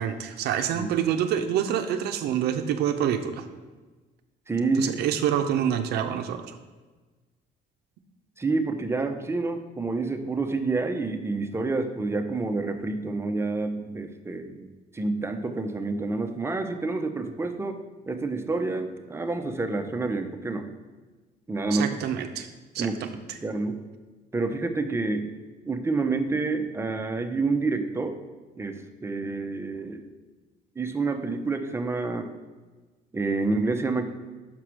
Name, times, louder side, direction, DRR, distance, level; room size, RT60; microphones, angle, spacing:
voice 1, 0.0-3.5 4.8-6.6 21.7-22.5 22.7-23.4, right 9 dB, 75° right, 7 dB, 0.6 m, -27 dB
voice 2, 4.5-4.9 8.4-14.7 14.9-20.7 21.5-21.9 22.8-23.0 23.4-23.8 24.3-25.3 25.7-28.2 28.6-30.0 30.8-32.3 33.1-34.0, right 3 dB, 15° right, 6 dB, 0.6 m, -28 dB
6.0 x 4.9 x 6.0 m, 1.3 s
cardioid pair, 110°, 17 cm